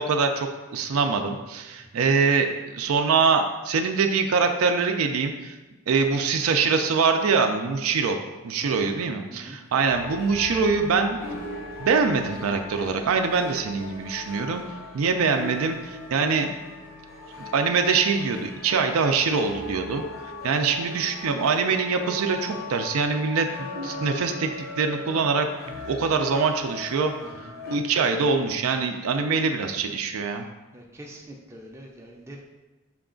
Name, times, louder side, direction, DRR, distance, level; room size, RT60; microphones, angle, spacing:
voice 1, 0.0-5.6 5.9-8.2 8.4-11.2 11.8-14.6 14.9-16.5 17.5-20.0 20.4-27.1 27.7-30.5, right 5 dB, 80° right, 5 dB, 0.4 m, -24 dB
voice 2, 8.6-8.9 9.3-9.6 20.5-20.8 27.2-27.6 30.7-32.4, right 1 dB, 10° right, -1 dB, 0.4 m, -43 dB
sound 1, 9.9-27.8, left 2 dB, 70° left, 0.8 m, -38 dB
5.8 x 2.3 x 3.7 m, 1.2 s
head